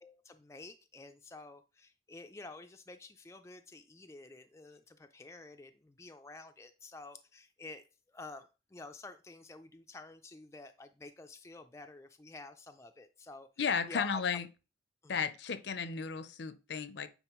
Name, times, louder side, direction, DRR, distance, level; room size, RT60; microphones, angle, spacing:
voice 1, 0.0-13.5 13.9-14.2 15.0-15.2, left 3 dB, 15° left, 0.3 m, -50 dB
voice 2, 13.6-14.5 15.1-17.1, left 6 dB, 65° left, 0.6 m, -34 dB
9.0 x 4.2 x 3.0 m
head